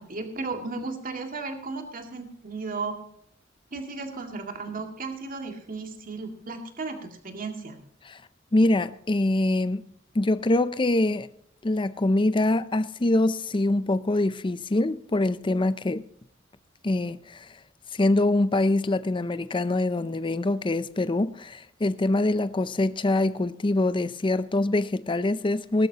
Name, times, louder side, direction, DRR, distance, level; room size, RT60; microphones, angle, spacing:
voice 1, 0.0-3.0 3.7-7.8, right 3 dB, 45° right, 2.1 m, -35 dB
voice 2, 8.5-9.8 10.1-11.3 11.6-16.0 16.8-17.5 17.9-25.9, left 2 dB, 25° left, 0.5 m, -24 dB
19.5 x 12.0 x 2.9 m
head